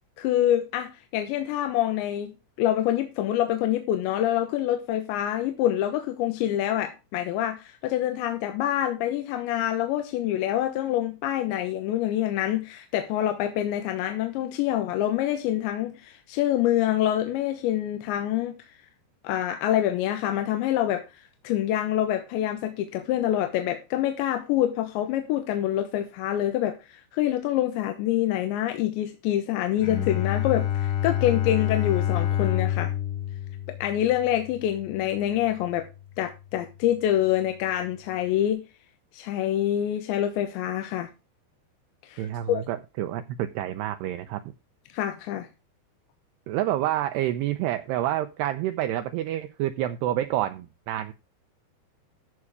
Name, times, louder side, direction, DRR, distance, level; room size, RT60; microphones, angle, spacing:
voice 1, 0.2-18.7 19.2-32.9 33.7-35.9 36.2-38.6 39.1-41.1 42.0-42.6 44.9-45.5, left 12 dB, 80° left, 3.3 m, -26 dB
Bowed string instrument, 29.8-35.5, left 11 dB, 60° left, 5.3 m, -28 dB
voice 2, 42.2-44.4 46.5-51.1, right 13 dB, 80° right, 2.6 m, -28 dB
14.0 x 6.3 x 4.8 m
omnidirectional pair, 5.2 m